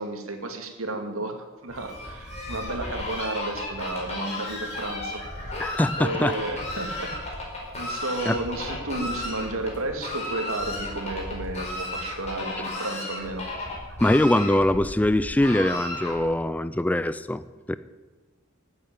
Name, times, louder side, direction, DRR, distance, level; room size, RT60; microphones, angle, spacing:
voice 1, 0.0-7.5 7.7-13.4, right 2 dB, 80° right, 5 dB, 2.3 m, -33 dB
Fowl, 1.7-16.4, left 2 dB, 30° left, 4.6 m, -34 dB
voice 2, 5.6-6.4 8.3-8.4 14.0-17.8, left 1 dB, 5° left, 14 dB, 0.4 m, -23 dB
sound 1, 6.2-12.2, equal, 60° left, 4.0 m, -45 dB
12.5 x 8.9 x 9.5 m, 1.3 s
head